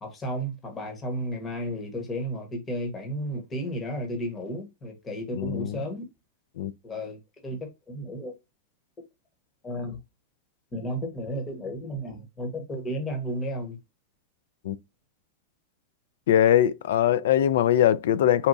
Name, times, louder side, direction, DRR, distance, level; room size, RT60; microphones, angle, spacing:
voice 1, 0.0-6.0 6.8-8.4 9.6-10.0 10.7-13.8, equal, 20° left, 1.0 m, -33 dB
voice 2, 5.3-5.8 6.6-6.7 14.6-14.8 16.3-18.5, left 11 dB, 75° left, 0.3 m, -21 dB
4.1 x 2.2 x 2.4 m
supercardioid pair, 145°, 0 cm